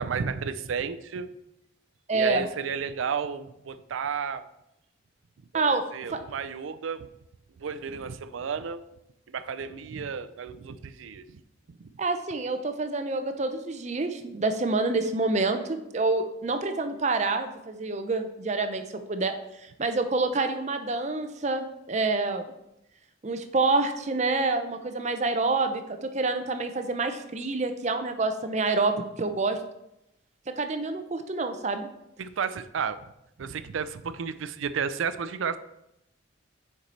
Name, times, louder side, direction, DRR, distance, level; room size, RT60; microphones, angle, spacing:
voice 1, 0.0-1.3 2.1-4.4 5.5-7.1 7.6-8.8 9.3-11.4 11.7-11.9 32.2-33.0 33.4-35.6, right 6 dB, 85° right, 12 dB, 0.4 m, -32 dB
voice 2, 2.1-2.5 5.5-5.8 6.1-6.2 12.0-19.3 19.6-22.4 23.2-29.6 30.6-31.9, right 3 dB, 35° right, 8 dB, 0.5 m, -27 dB
6.5 x 4.6 x 4.2 m, 0.85 s
head